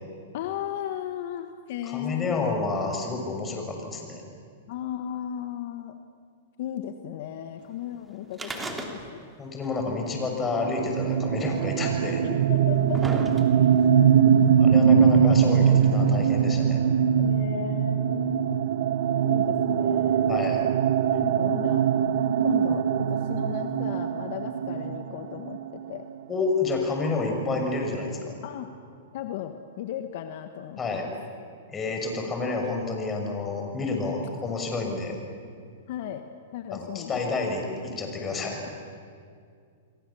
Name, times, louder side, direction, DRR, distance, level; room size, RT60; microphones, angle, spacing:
voice 1, 0.3-2.4 4.7-6.0 6.6-9.2 10.8-10.9 12.2-13.2 17.2-18.6 19.2-20.5 21.2-21.8 22.4-25.6 25.9-26.1 28.4-28.7 29.1-31.1 33.9-34.1 35.9-36.2 36.5-37.5, left 10 dB, 60° left, 7 dB, 1.5 m, -36 dB
voice 2, 1.8-4.2 9.4-12.2 14.6-16.8 20.3-20.6 26.3-28.3 30.8-31.0 31.7-35.2 36.7-38.6, left 3 dB, 20° left, 2 dB, 6.1 m, -29 dB
sound 1, 8.3-9.4 9.6-9.7 10.7-10.8 11.7-11.8 12.5-13.8 14.7-14.8, right 2 dB, 10° right, 3.0 m, -35 dB
sound 2, 10.6-26.2, right 8 dB, 60° right, 1.2 m, -22 dB
29.0 x 22.5 x 7.1 m, 2.3 s
hypercardioid pair, 125°, 0 cm